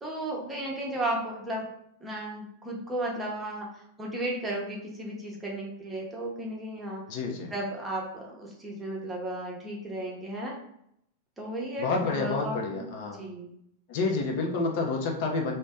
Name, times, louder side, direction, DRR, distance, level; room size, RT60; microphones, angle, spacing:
voice 1, 0.0-1.6 2.0-7.0 7.5-10.5 11.4-12.8 13.2-13.5, right 1 dB, 10° right, -3 dB, 0.8 m, -34 dB
voice 2, 7.1-7.5 11.8-13.2 13.9-15.5, left 3 dB, 55° left, 1 dB, 0.6 m, -29 dB
2.5 x 2.1 x 3.4 m, 0.74 s
hypercardioid pair, 135°, 0 cm